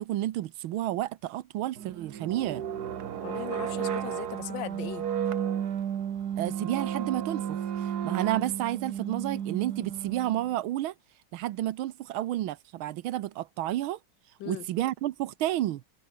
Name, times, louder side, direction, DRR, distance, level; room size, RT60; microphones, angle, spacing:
voice 1, 0.0-2.6 6.4-10.9 11.3-14.0 14.4-15.8, right 14 dB, 90° right, 1.6 m, -31 dB
sound 1, 1.8-10.5, right 9 dB, 55° right, 1.6 m, -33 dB
voice 2, 3.2-5.1 14.4-14.7, left 13 dB, 70° left, 1.4 m, -38 dB
omnidirectional pair, 2.2 m